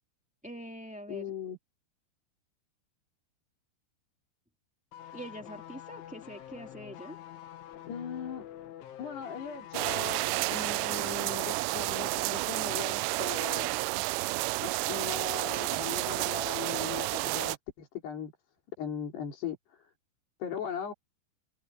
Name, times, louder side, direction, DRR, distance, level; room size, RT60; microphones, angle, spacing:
voice 1, 0.4-1.3 5.1-7.2, right 1 dB, 5° right, 0.5 m, -44 dB
voice 2, 1.1-1.6 7.9-8.4 9.0-13.7 14.6-18.3 18.8-19.8 20.4-20.9, left 7 dB, 55° left, 5.3 m, -39 dB
sound 1, 4.9-11.6 11.9-12.0, left 11 dB, 75° left, 4.2 m, -47 dB
sound 2, 9.7-17.6, right 23 dB, 85° right, 3.0 m, -31 dB
omnidirectional pair, 5.8 m